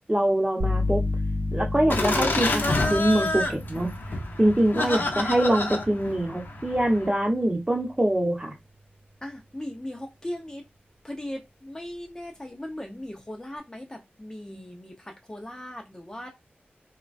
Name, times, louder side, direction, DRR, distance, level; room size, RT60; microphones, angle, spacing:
voice 1, 0.1-1.0 1.5-3.9 4.4-8.5, right 1 dB, 20° right, 0.9 m, -24 dB
sound 1, 0.6-8.3, left 2 dB, 50° right, 0.9 m, -33 dB
Laughter, 1.9-7.1, left 2 dB, 65° left, 0.6 m, -28 dB
voice 2, 4.8-5.2 9.2-10.6 11.0-16.3, left 1 dB, 15° left, 0.5 m, -38 dB
3.0 x 2.2 x 2.5 m
wide cardioid pair, 60°, 4 cm